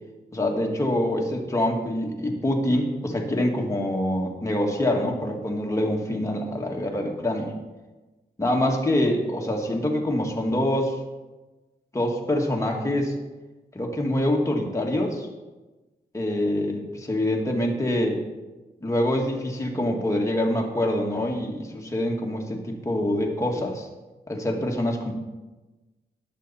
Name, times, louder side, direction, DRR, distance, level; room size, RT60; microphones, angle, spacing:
voice 1, 0.3-7.5 8.4-10.9 11.9-13.1 13.7-15.3 16.1-18.2 18.8-23.9 24.3-25.1, left 1 dB, 20° left, 0 dB, 1.7 m, -25 dB
19.0 x 6.6 x 4.2 m, 1.2 s
wide cardioid pair, 155°, 17 cm